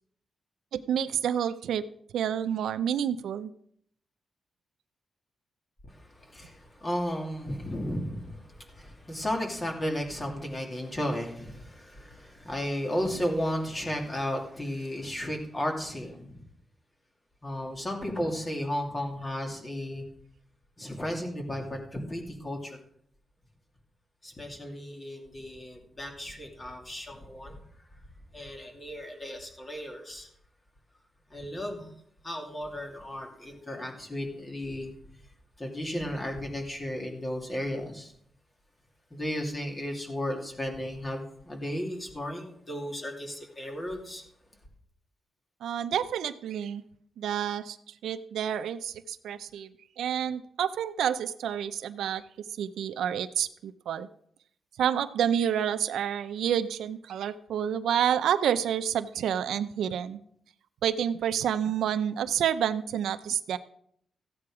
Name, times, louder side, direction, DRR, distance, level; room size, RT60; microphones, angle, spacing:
voice 1, 0.7-1.8 2.1-3.5 45.6-46.8 47.2-47.8 48.0-49.7 50.0-52.2 52.6-54.1 54.8-60.2 60.8-63.6, right 9 dB, 90° right, 12 dB, 0.6 m, -29 dB
voice 2, 5.8-16.4 17.4-20.0 20.8-22.8 24.2-27.6 28.3-30.3 31.3-31.9 32.2-34.9 35.6-38.1 39.1-44.2, equal, 20° left, 2 dB, 2.6 m, -34 dB
14.5 x 8.6 x 4.8 m, 0.67 s
cardioid pair, 115°, 0 cm